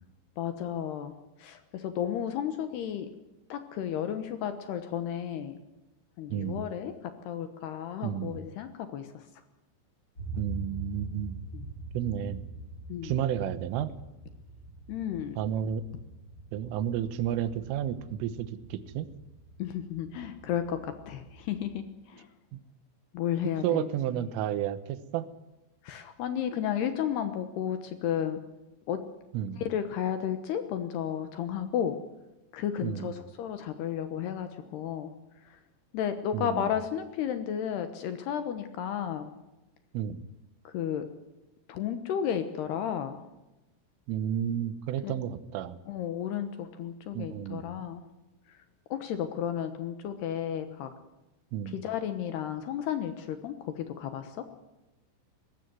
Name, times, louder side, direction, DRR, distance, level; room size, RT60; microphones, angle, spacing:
voice 1, 0.4-1.1 1.4-3.1 3.5-5.6 6.2-6.9 7.3-9.2 11.5-11.7 12.9-13.2 14.9-15.4 19.6-22.3 23.1-23.9 25.8-28.4 28.9-29.0 29.5-32.0 32.5-35.1 35.5-35.6 35.9-39.3 40.6-41.1 41.7-43.2 45.0-45.2 45.9-48.0 48.9-50.9 51.7-54.4, left 9 dB, 75° left, 10 dB, 2.6 m, -33 dB
voice 2, 6.3-6.7 8.0-8.4 10.3-11.4 12.0-12.4 13.0-13.9 15.4-15.8 16.5-19.1 22.5-22.6 23.6-25.3 29.3-29.6 32.8-33.2 36.3-36.8 39.9-40.2 44.1-45.8 47.2-47.6 51.5-51.8, right 10 dB, 80° right, 14 dB, 3.6 m, -31 dB
sound 1, 10.1-21.7, right 2 dB, 20° left, 7.0 m, -44 dB
20.5 x 15.5 x 9.5 m, 1.0 s
omnidirectional pair, 6.0 m